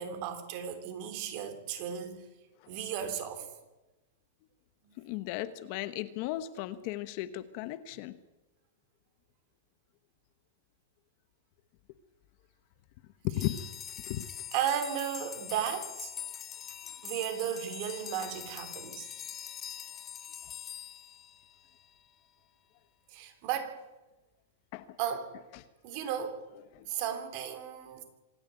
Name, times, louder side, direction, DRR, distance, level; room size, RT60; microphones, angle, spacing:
voice 1, 0.0-2.3 2.7-3.5 14.5-16.1 17.0-19.1 23.1-23.8 25.0-25.4 25.8-26.5 26.9-28.0, right 9 dB, 40° right, 7 dB, 3.4 m, -35 dB
voice 2, 5.0-8.1 13.2-13.5 14.1-14.3 24.7-24.8 26.7-26.9, left 15 dB, 40° left, 13 dB, 1.0 m, -35 dB
sound 1, 13.3-21.9, left 9 dB, 20° left, 0.8 m, -43 dB
25.5 x 11.0 x 9.5 m, 1.1 s
supercardioid pair, 155°, 0 cm